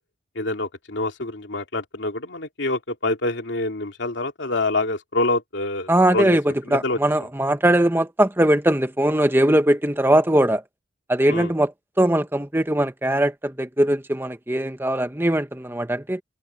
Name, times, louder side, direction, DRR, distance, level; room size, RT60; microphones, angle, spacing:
voice 1, 0.3-6.4 6.7-7.0 11.3-11.5, left 2 dB, 80° left, 2.6 m, -26 dB
voice 2, 5.9-10.6 11.1-11.7 12.0-16.2, right 1 dB, 10° right, 1.5 m, -20 dB
head